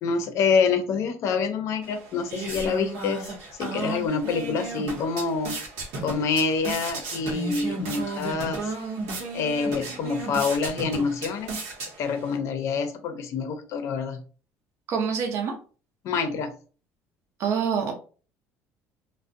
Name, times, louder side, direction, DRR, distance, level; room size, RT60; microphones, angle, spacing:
voice 1, 0.0-3.3 3.6-5.6 6.0-8.7 9.3-11.5 11.8-14.2 16.0-16.5, left 5 dB, 60° left, 8 dB, 0.5 m, -26 dB
sound 1, 1.8-12.4, right 3 dB, 80° right, 0.8 m, -34 dB
voice 2, 14.9-15.5 17.4-17.9, right 6 dB, 55° right, 3 dB, 0.5 m, -25 dB
2.5 x 2.1 x 2.4 m, 0.38 s
cardioid pair, 105°, 6 cm